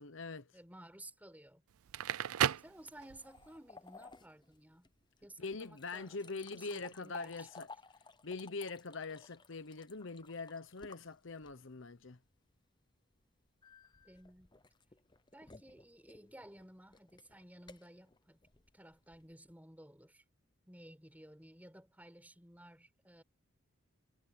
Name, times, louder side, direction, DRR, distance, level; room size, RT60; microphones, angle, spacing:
voice 1, 0.0-0.5 5.4-7.7 8.2-12.2, left 3 dB, 65° left, 0.9 m, -43 dB
voice 2, 0.5-1.6 2.6-4.9 5.2-7.5 14.0-14.5 15.3-18.4 18.7-20.2 20.7-23.2, right 1 dB, 10° right, 4.7 m, -56 dB
Crackle, 1.7-3.5, right 10 dB, 90° right, 0.4 m, -34 dB
sound 1, 3.2-11.8 13.6-19.3, left 4 dB, 20° left, 0.8 m, -57 dB
head